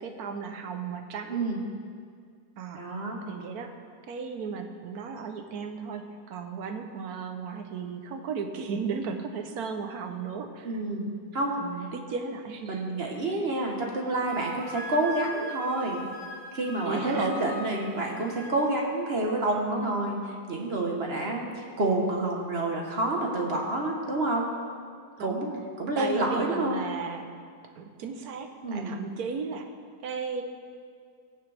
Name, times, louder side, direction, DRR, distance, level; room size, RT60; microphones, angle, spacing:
voice 1, 0.0-1.4 2.6-2.8 3.3-3.7 4.1-10.8 11.6-12.8 16.8-17.5 25.2-25.6 26.0-27.3 27.8-29.7 30.0-30.4, right 5 dB, 70° right, 6 dB, 1.3 m, -35 dB
voice 2, 1.3-1.6 2.7-3.2 10.6-11.1 11.3-11.6 12.7-16.0 16.5-20.2 20.5-24.5 25.2-25.5 25.8-26.8 28.6-28.9, right 2 dB, 40° right, 0 dB, 1.3 m, -28 dB
Wind instrument woodwind instrument, 14.3-18.6, equal, 75° left, 1.9 m, -41 dB
20.0 x 7.0 x 3.4 m, 2.1 s
omnidirectional pair, 1.8 m